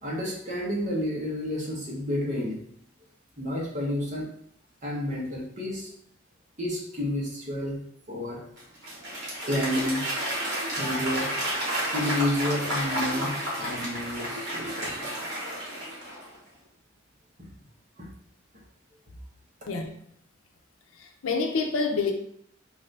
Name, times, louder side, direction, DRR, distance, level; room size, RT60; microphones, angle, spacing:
voice 1, 0.0-2.6 3.4-4.3 4.8-5.9 6.6-7.8 8.1-8.4 9.4-10.0 10.8-11.3 11.9-15.2 18.0-18.1, left 1 dB, 35° right, -4 dB, 1.0 m, -30 dB
Applause / Crowd, 8.6-16.4, equal, 60° right, 1.3 m, -31 dB
voice 2, 19.7-20.0 20.9-22.1, left 4 dB, 90° left, 3 dB, 0.6 m, -28 dB
4.0 x 2.6 x 3.2 m, 0.66 s
head